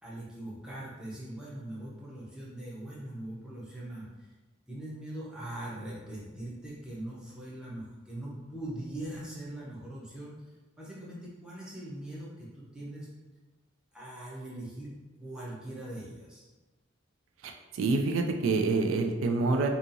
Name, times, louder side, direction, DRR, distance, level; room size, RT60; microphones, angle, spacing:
voice 1, 0.0-4.3 4.7-13.1 13.9-16.4, right 1 dB, 5° right, -7 dB, 0.6 m, -41 dB
voice 2, 17.4-19.7, right 3 dB, 85° right, 4 dB, 0.3 m, -27 dB
2.7 x 2.4 x 2.6 m, 1.2 s
head